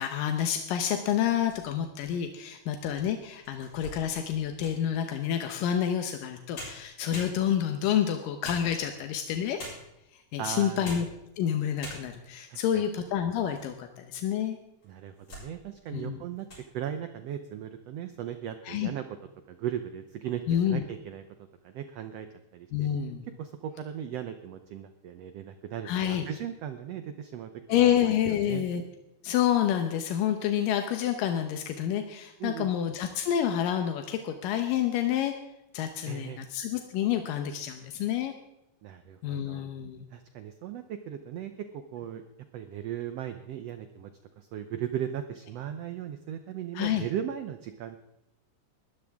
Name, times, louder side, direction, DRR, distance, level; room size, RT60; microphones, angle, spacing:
voice 1, 0.0-9.6 10.3-11.1 11.4-14.6 15.9-16.2 18.7-18.9 20.5-20.8 22.7-23.2 25.9-26.3 27.7-28.8 29.2-35.3 35.7-38.3 39.2-40.0 46.7-47.1, left 10 dB, 85° left, 6 dB, 2.6 m, -28 dB
sound 1, 1.3-2.0 2.6-2.7 3.2-4.9 6.2-6.3 6.5-7.8 8.4-9.1 9.6-10.0 10.7-11.2 11.5-11.6 11.8-12.4 12.9-13.7 14.0-14.1 14.8-15.5 15.9-16.1 16.4-16.7, left 1 dB, 55° left, 7.5 m, -44 dB
voice 2, 10.4-10.9 12.5-12.8 14.8-16.5 16.7-19.0 19.5-22.3 22.5-22.9 23.4-27.9 28.2-28.6 32.4-32.7 36.1-36.4 38.8-39.6 40.1-42.2 42.5-44.1 44.4-48.0, right 10 dB, 75° right, 9 dB, 1.5 m, -37 dB
20.0 x 13.0 x 3.6 m, 0.88 s
omnidirectional pair, 3.8 m